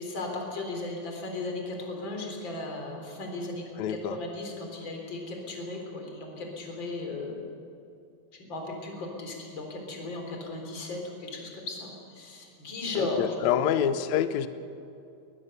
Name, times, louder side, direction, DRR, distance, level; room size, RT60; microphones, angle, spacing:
voice 1, 0.0-3.6 3.9-7.4 8.5-13.8, left 2 dB, 35° left, 1 dB, 4.1 m, -36 dB
voice 2, 3.8-4.2 12.9-14.5, left 9 dB, 70° left, 12 dB, 1.9 m, -27 dB
23.0 x 19.5 x 6.8 m, 2.5 s
omnidirectional pair, 3.9 m